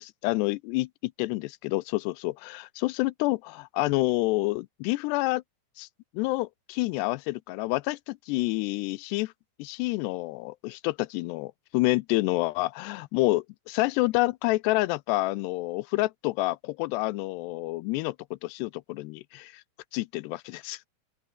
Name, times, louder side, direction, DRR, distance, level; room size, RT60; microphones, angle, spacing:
voice 1, 0.0-5.4 5.8-5.9 6.1-9.3 9.6-13.4 13.8-19.6 19.9-20.9, left 21 dB, 80° left, 2.6 m, -28 dB
open air
omnidirectional pair, 4.9 m